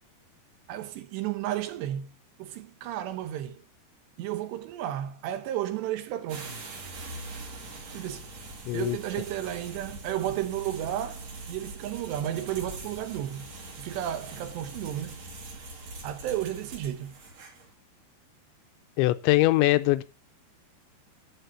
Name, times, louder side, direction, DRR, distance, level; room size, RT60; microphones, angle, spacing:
voice 1, 0.7-2.1 2.4-3.6 4.2-6.6 7.9-8.3 8.7-13.5 13.8-15.2 16.0-17.2, right 12 dB, 75° right, 3.1 m, -33 dB
sound 1, 6.3-17.7, right 2 dB, 40° right, 3.0 m, -42 dB
voice 2, 8.7-9.0 19.0-20.0, left 18 dB, 90° left, 3.0 m, -22 dB
11.5 x 4.7 x 8.3 m
omnidirectional pair, 5.1 m